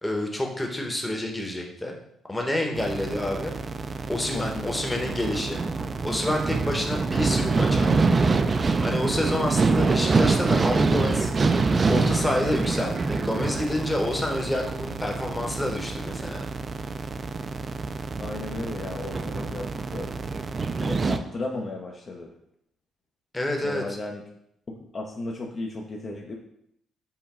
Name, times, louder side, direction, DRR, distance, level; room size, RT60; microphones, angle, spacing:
voice 1, 0.0-2.0 2.3-3.5 4.1-5.6 6.0-8.1 8.8-11.3 11.9-16.4 23.3-23.8, left 1 dB, 10° left, 1 dB, 0.9 m, -28 dB
sound 1, 2.8-21.2, right 4 dB, 35° right, 0.3 m, -26 dB
voice 2, 4.3-4.8 18.2-20.1 20.8-22.3 23.6-24.2 24.7-26.3, left 2 dB, 40° left, 0 dB, 0.5 m, -35 dB
sound 2, 9.5-16.5, right 2 dB, 80° right, 1.0 m, -43 dB
5.6 x 2.2 x 4.2 m, 0.75 s
cardioid pair, 90°, 0 cm